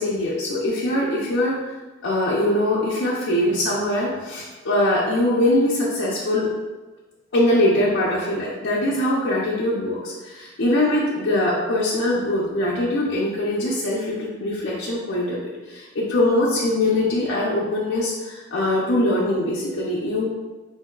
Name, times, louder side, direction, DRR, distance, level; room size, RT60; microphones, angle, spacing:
voice 1, 0.0-1.6 2.0-6.5 7.3-20.3, left 1 dB, 80° left, -6 dB, 0.5 m, -22 dB
3.8 x 2.7 x 2.3 m, 1.2 s
head